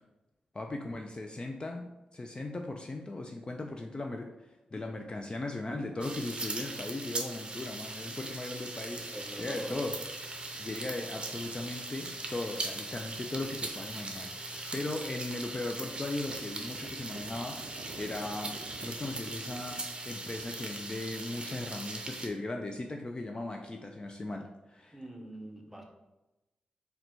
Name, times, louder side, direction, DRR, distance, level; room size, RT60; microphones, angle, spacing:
voice 1, 0.5-9.1 9.4-10.0 10.6-25.3, left 2 dB, 35° left, 3 dB, 0.4 m, -38 dB
sound 1, 6.0-22.3, right 2 dB, 35° right, 0.6 m, -40 dB
voice 2, 9.1-9.7 24.9-25.9, right 1 dB, 5° right, 1 dB, 0.8 m, -44 dB
sound 2, 9.1-19.8, right 4 dB, 80° right, 0.3 m, -54 dB
3.9 x 2.2 x 4.4 m, 1.0 s
cardioid pair, 65°, 3 cm